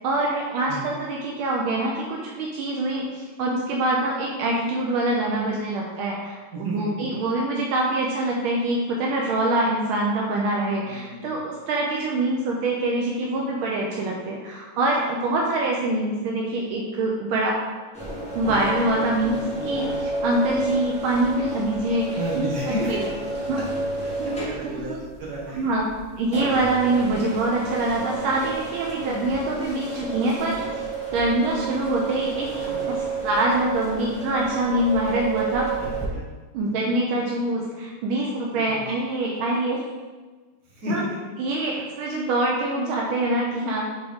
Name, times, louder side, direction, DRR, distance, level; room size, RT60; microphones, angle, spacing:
voice 1, 0.0-17.5 18.3-22.5 22.9-23.0 23.5-23.6 24.7-25.0 25.5-25.8 26.2-30.8 31.1-35.7 36.5-39.8 40.9-41.0 41.4-43.9, right 2 dB, 80° right, -2 dB, 1.5 m, -25 dB
voice 2, 6.5-7.1 10.8-11.3 22.1-23.1 23.6-23.7 24.0-24.9 25.2-25.6 28.9-29.3 35.8-36.3 36.8-36.9 38.5-38.9 40.7-41.2 41.7-41.8, equal, 55° right, -5 dB, 2.1 m, -33 dB
sound 1, 17.9-36.1, right 3 dB, 5° left, 1.6 m, -30 dB
7.5 x 3.6 x 3.6 m, 1.3 s
omnidirectional pair, 2.3 m